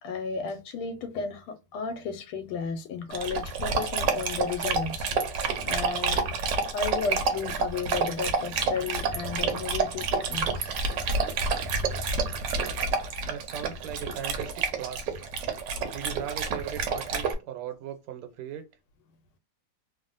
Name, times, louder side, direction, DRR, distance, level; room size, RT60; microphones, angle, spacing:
voice 1, 0.0-6.2 6.7-12.2, left 5 dB, 80° left, 1.4 m, -34 dB
Dog, 3.1-17.3, right 4 dB, 70° right, 1.1 m, -29 dB
voice 2, 13.2-15.2 15.9-18.7, right 9 dB, 85° right, 1.6 m, -38 dB
3.5 x 2.1 x 2.4 m
omnidirectional pair, 2.3 m